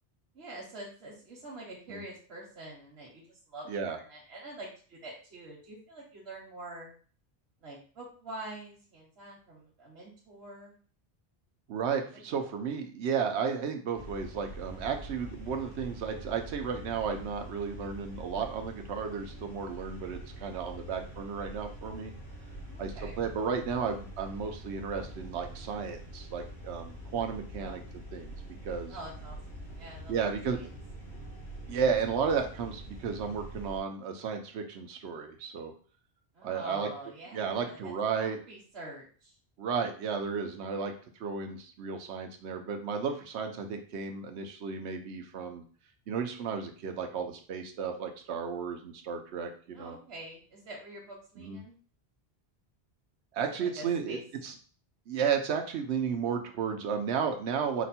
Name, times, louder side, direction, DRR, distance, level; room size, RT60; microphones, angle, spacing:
voice 1, 0.3-6.9 7.6-10.7 12.1-12.2 22.7-23.2 27.6-27.8 28.9-29.4 29.7-30.7 36.3-39.3 49.7-51.7 53.4-54.2, right 1 dB, 70° right, -5 dB, 1.2 m, -46 dB
voice 2, 3.7-4.0 11.7-22.1 22.8-27.8 28.1-29.0 30.1-30.6 31.7-35.7 36.4-36.9 37.3-38.4 39.6-40.9 41.2-45.6 46.1-50.0 51.4-51.6 53.3-54.2 54.4-54.5 55.1-57.8, right 6 dB, 90° right, 5 dB, 0.9 m, -33 dB
sound 1, 13.9-33.8, right 1 dB, 75° left, 2.8 m, -45 dB
5.1 x 2.2 x 4.2 m, 0.42 s
omnidirectional pair, 1.1 m